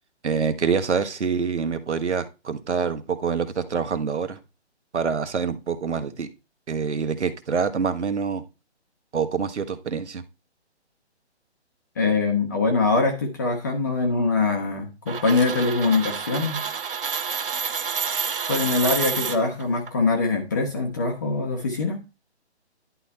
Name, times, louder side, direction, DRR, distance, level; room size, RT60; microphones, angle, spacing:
voice 1, 0.2-4.4 4.9-6.3 6.7-8.4 9.1-10.2, right 6 dB, 85° right, 10 dB, 1.4 m, -26 dB
voice 2, 12.0-16.6 18.5-22.0, left 3 dB, 15° left, 2 dB, 0.8 m, -23 dB
sound 1, 15.1-19.9, right 6 dB, 50° right, 1.0 m, -29 dB
11.0 x 4.1 x 4.3 m, 0.28 s
hypercardioid pair, 165°, 34 cm